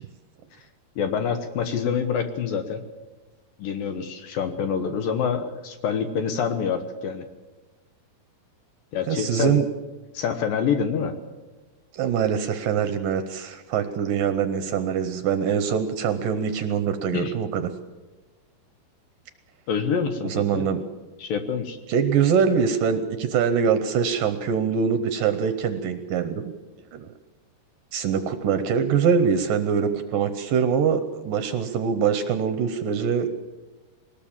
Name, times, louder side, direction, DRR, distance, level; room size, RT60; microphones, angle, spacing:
voice 1, 1.0-2.8 3.6-7.2 8.9-9.6 10.1-11.1 17.1-17.3 19.7-20.6 21.2-21.8, left 6 dB, 65° left, 8 dB, 2.5 m, -26 dB
voice 2, 9.1-9.6 11.9-17.7 20.2-20.8 21.9-26.4 26.9-27.1 27.9-33.3, right 7 dB, 70° right, 9 dB, 2.2 m, -23 dB
21.5 x 19.0 x 7.3 m, 1.2 s
omnidirectional pair, 4.8 m